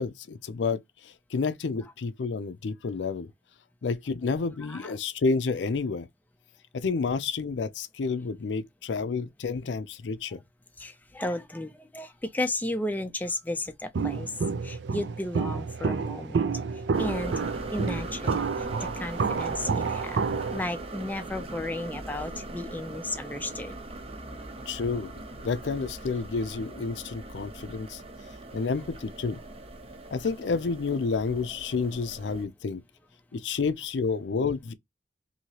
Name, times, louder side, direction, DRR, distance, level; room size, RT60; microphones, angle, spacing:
voice 1, 0.0-3.3 3.8-6.1 6.7-10.4 24.7-25.1 25.4-28.0 28.5-29.4 30.1-32.8 33.3-34.7, left 4 dB, 90° left, 0.5 m, -30 dB
voice 2, 10.8-14.3 14.6-16.5 17.0-17.3 17.7-18.4 18.8-20.2 20.5-23.8, left 1 dB, 10° left, 0.4 m, -33 dB
Walk footsteps, 13.9-20.6, right 5 dB, 70° right, 0.4 m, -29 dB
sound 1, 16.9-32.4, right 2 dB, 35° right, 0.6 m, -40 dB
2.9 x 2.7 x 2.8 m
head